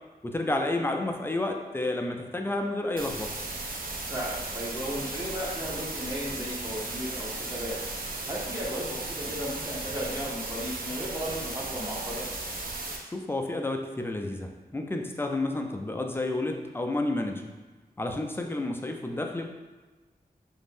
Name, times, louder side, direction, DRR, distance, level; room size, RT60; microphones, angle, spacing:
voice 1, 0.2-3.3 13.1-17.5 18.0-19.5, left 2 dB, 15° left, 3 dB, 0.3 m, -30 dB
sound 1, 3.0-13.0, right 2 dB, 60° right, 0.5 m, -36 dB
voice 2, 4.1-7.8 8.3-12.2, equal, 20° right, -7 dB, 0.7 m, -35 dB
2.5 x 2.0 x 3.4 m, 1.3 s
cardioid pair, 50°, 16 cm